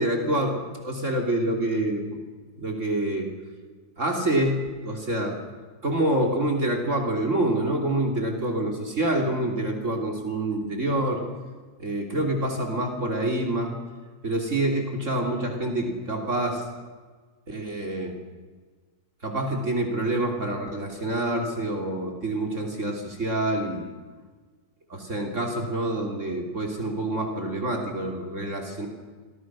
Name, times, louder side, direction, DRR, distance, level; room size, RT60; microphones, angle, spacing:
voice 1, 0.0-2.2 2.6-3.3 4.0-4.6 4.8-5.4 5.8-11.2 11.8-13.7 14.2-16.7 17.5-18.2 19.2-23.9 24.9-28.9, right 1 dB, 45° right, 2 dB, 3.6 m, -27 dB
29.0 x 23.5 x 6.3 m, 1.4 s
omnidirectional pair, 1.8 m